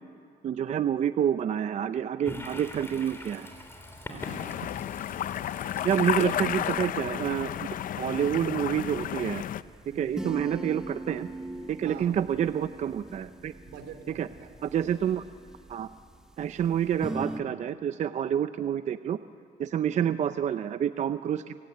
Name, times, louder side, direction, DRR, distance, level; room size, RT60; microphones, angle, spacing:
voice 1, 0.4-3.5 5.8-7.7 8.0-9.4 10.0-11.3 11.7-13.5 14.2-14.3 14.6-15.2 15.7-15.9 16.4-19.2 19.6-21.6, right 9 dB, 45° right, 12 dB, 0.6 m, -28 dB
Toilet flush, 2.2-8.8, left 1 dB, 15° left, 3.4 m, -45 dB
voice 2, 4.1-4.5 9.9-10.3 11.8-12.1 13.7-14.8 19.9-20.2, right 6 dB, 75° right, 7 dB, 3.1 m, -46 dB
sound 1, 4.2-9.6, left 11 dB, 55° left, 0.6 m, -32 dB
sound 2, 6.1-17.4, right 1 dB, 5° right, 1.6 m, -42 dB
29.0 x 17.0 x 9.3 m, 2.4 s
cardioid pair, 110°, 17 cm